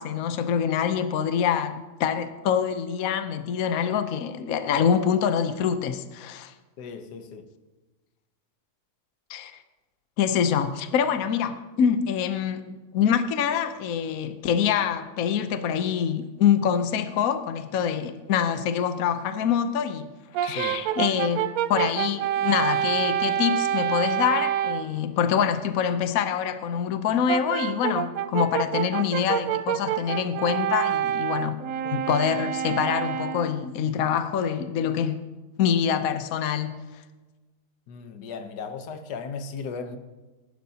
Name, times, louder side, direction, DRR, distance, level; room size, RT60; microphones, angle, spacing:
voice 1, 0.0-6.5 9.3-9.6 10.2-20.1 20.4-21.4 21.7-35.2 35.6-36.8, left 8 dB, 65° left, 1.1 m, -25 dB
voice 2, 6.8-7.5 20.5-20.8 37.9-40.0, left 5 dB, 90° left, 1.5 m, -36 dB
Brass instrument, 20.3-24.9 27.3-33.6, right 11 dB, 70° right, 0.9 m, -27 dB
21.5 x 11.5 x 2.8 m
omnidirectional pair, 1.7 m